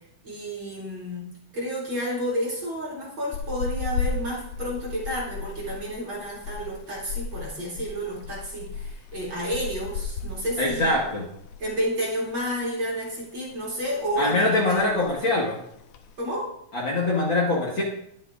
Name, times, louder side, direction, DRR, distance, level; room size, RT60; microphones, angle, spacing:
voice 1, 0.2-1.2 1.5-11.0 11.6-15.1 16.2-16.5, equal, 35° right, -5 dB, 3.6 m, -31 dB
sound 1, 3.3-11.9 12.1-12.3 12.7-13.6 13.9-14.3 14.5-14.6 14.8-15.2 15.8-16.3, left 4 dB, 75° left, 2.3 m, -34 dB
voice 2, 10.6-11.3 14.2-15.6 16.7-17.8, left 2 dB, 45° left, -4 dB, 2.0 m, -23 dB
21.5 x 7.2 x 2.6 m, 0.74 s
omnidirectional pair, 3.8 m